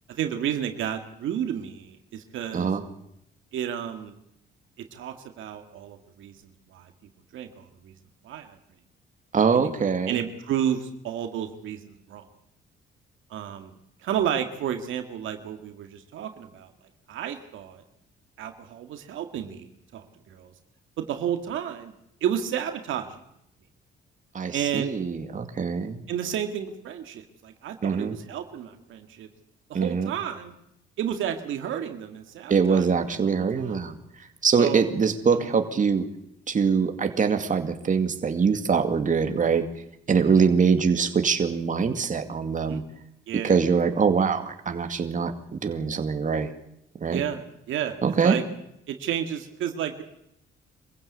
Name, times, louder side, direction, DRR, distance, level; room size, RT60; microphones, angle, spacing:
voice 1, 0.1-2.7 3.5-4.2 4.9-6.9 7.3-7.9 8.2-8.6 9.5-9.7 10.1-12.3 13.3-13.7 14.0-16.7 17.1-17.8 18.4-20.5 21.0-21.9 22.2-23.2 24.5-24.9 26.1-29.3 29.7-30.5 31.0-33.2 33.5-33.7 34.6-34.9 35.3-35.5 40.2-40.5 42.7-42.8 43.3-43.6 47.1-47.4 47.7-48.4 48.9-50.0, right 9 dB, 80° right, 6 dB, 2.0 m, -31 dB
voice 2, 9.3-10.2 24.3-26.0 27.8-28.2 29.7-30.1 32.5-36.1 36.5-39.6 40.1-42.8 43.4-46.5 47.0-47.2 48.0-48.4, right 5 dB, 40° right, 6 dB, 2.3 m, -23 dB
24.5 x 15.5 x 8.4 m, 0.78 s
cardioid pair, 90°, 20 cm